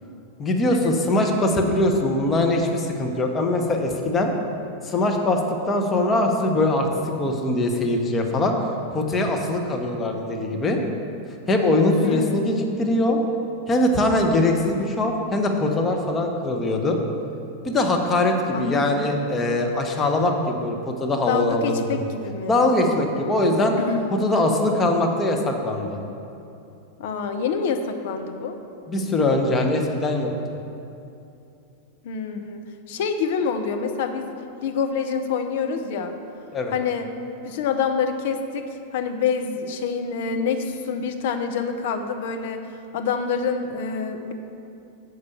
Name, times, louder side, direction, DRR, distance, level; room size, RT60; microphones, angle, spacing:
voice 1, 0.4-4.3 4.8-5.4 5.7-6.9 7.2-8.5 8.9-10.8 11.5-13.2 13.7-17.0 17.6-22.1 22.5-23.8 24.2-26.0 28.9-30.3 36.5-36.7, left 2 dB, 20° left, 2 dB, 0.9 m, -22 dB
voice 2, 12.0-12.4 18.5-19.1 21.3-22.6 23.8-24.1 27.0-28.6 32.0-34.3 34.6-36.1 36.7-37.1 37.4-38.6 38.9-44.3, left 6 dB, 55° left, 6 dB, 0.6 m, -27 dB
6.6 x 5.4 x 7.0 m, 2.7 s
figure-of-eight pair, 90°, 0 cm